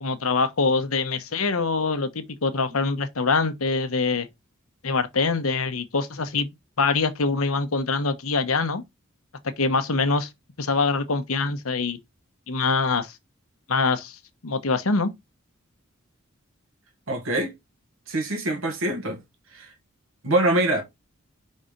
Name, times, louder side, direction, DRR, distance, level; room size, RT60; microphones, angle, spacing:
voice 1, 0.0-4.3 4.8-6.5 6.8-8.8 9.4-10.3 10.6-12.0 12.5-13.1 13.7-14.2 14.4-15.1, left 4 dB, 90° left, 1.1 m, -24 dB
voice 2, 17.1-17.5 18.1-19.2 19.5-19.7 20.2-20.8, right 1 dB, 70° right, 1.6 m, -24 dB
5.6 x 4.2 x 5.1 m
head